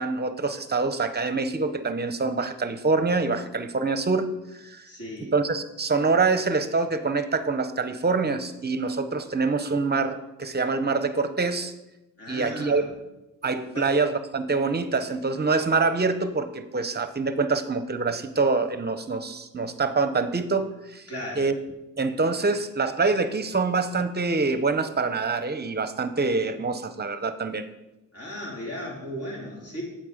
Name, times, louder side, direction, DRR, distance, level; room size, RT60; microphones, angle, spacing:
voice 1, 0.0-4.3 4.6-4.9 5.3-11.7 12.3-12.8 13.4-21.0 21.4-21.5 22.0-27.7, right 4 dB, 30° right, 11 dB, 0.8 m, -25 dB
voice 2, 4.8-5.3 12.2-12.9 13.7-13.9 21.1-21.4 28.1-29.8, left 1 dB, 45° left, -3 dB, 3.7 m, -36 dB
8.5 x 7.7 x 5.0 m, 0.96 s
cardioid pair, 95°, 33 cm